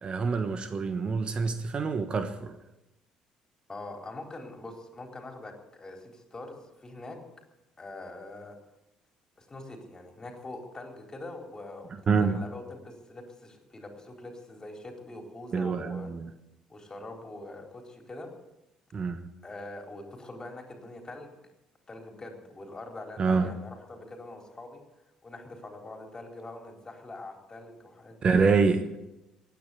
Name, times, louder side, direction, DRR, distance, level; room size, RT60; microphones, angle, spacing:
voice 1, 0.0-2.6 12.1-12.4 15.5-16.3 18.9-19.2 23.2-23.5 28.2-28.9, right 4 dB, 40° right, 1.3 m, -26 dB
voice 2, 3.7-7.2 7.8-8.6 9.4-16.1 16.7-18.3 19.4-21.4 21.9-24.8 25.2-28.7, left 2 dB, 25° left, 3.9 m, -43 dB
16.0 x 9.7 x 8.4 m
hypercardioid pair, 55°, 3 cm